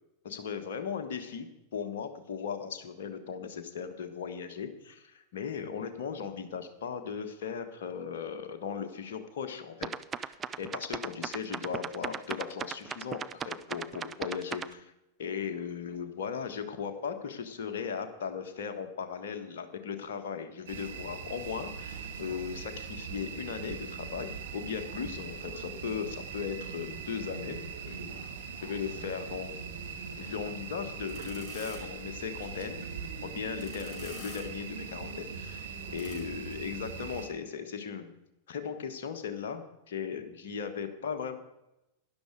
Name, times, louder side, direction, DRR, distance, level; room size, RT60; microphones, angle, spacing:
voice 1, 0.2-9.9 10.2-14.9 15.2-27.6 27.8-28.2 28.6-29.5 30.2-32.9 33.2-38.1 38.5-41.4, left 6 dB, 55° left, 6 dB, 1.5 m, -37 dB
sound 1, 9.8-14.7, right 7 dB, 20° right, 0.5 m, -37 dB
sound 2, 20.7-37.3, right 6 dB, 60° right, 1.7 m, -41 dB
sound 3, 30.8-36.2, left 3 dB, 20° left, 5.9 m, -51 dB
12.5 x 11.0 x 4.8 m, 0.91 s
figure-of-eight pair, 90°, 0 cm